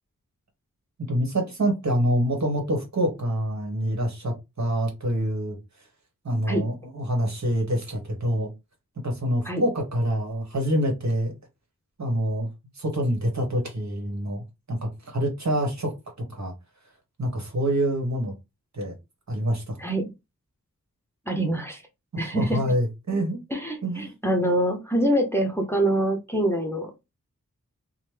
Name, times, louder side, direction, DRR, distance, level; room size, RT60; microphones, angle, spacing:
voice 1, 1.1-5.9 6.2-8.5 9.0-11.3 12.0-12.5 12.7-14.4 14.7-16.5 17.2-18.3 18.7-18.9 19.3-19.9 22.1-23.4 23.8-24.1, equal, 55° right, 1.3 m, -26 dB
voice 2, 19.8-20.1 21.3-21.8 22.2-22.6 23.5-26.9, right 1 dB, 10° left, 0.7 m, -25 dB
3.0 x 2.2 x 3.3 m
wide cardioid pair, 60°, 32 cm